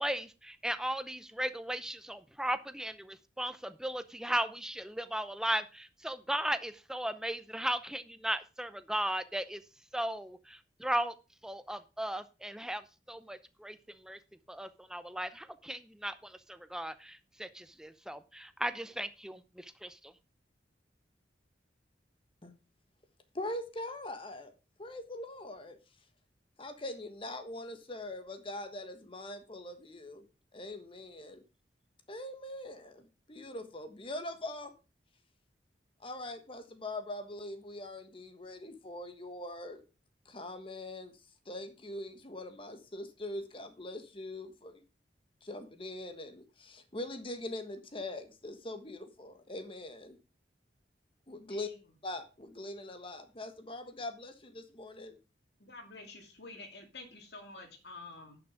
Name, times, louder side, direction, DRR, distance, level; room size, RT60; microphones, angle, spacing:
voice 1, 0.0-9.6 9.9-11.1 11.4-13.8 14.0-14.2 14.5-20.1, right 1 dB, 5° right, 12 dB, 0.6 m, -36 dB
voice 2, 23.3-24.5 24.8-25.8 26.6-30.2 30.5-31.4 32.1-34.7 36.0-39.8 40.2-41.1 41.4-44.8 45.4-50.2 51.3-51.7 52.0-55.2, left 1 dB, 30° left, 9 dB, 1.4 m, -42 dB
voice 3, 51.5-51.8 55.6-58.4, left 3 dB, 65° left, 4 dB, 2.6 m, -49 dB
11.0 x 6.1 x 4.9 m, 0.31 s
head